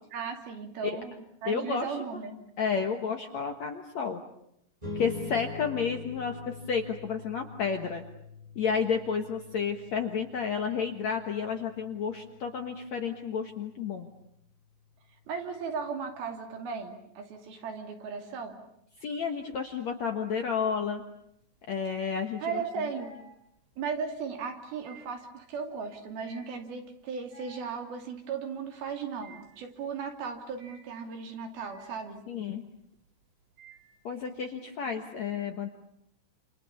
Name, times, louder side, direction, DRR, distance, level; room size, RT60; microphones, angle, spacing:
voice 1, 0.1-1.1 1.4-2.4 15.3-18.6 22.4-23.2 23.8-32.2, right 5 dB, 60° right, 4 dB, 4.4 m, -36 dB
voice 2, 1.5-2.0 2.6-4.2 5.0-8.0 8.6-14.1 19.0-21.0 21.7-22.6 32.3-32.6 34.0-35.7, left 6 dB, 60° left, 5 dB, 2.1 m, -31 dB
sound 1, 4.8-15.6, left 4 dB, 10° right, 3.4 m, -45 dB
sound 2, 18.9-19.6 19.9-34.4, right 1 dB, 90° right, 10.0 m, -56 dB
29.0 x 28.5 x 7.1 m, 0.74 s
omnidirectional pair, 5.0 m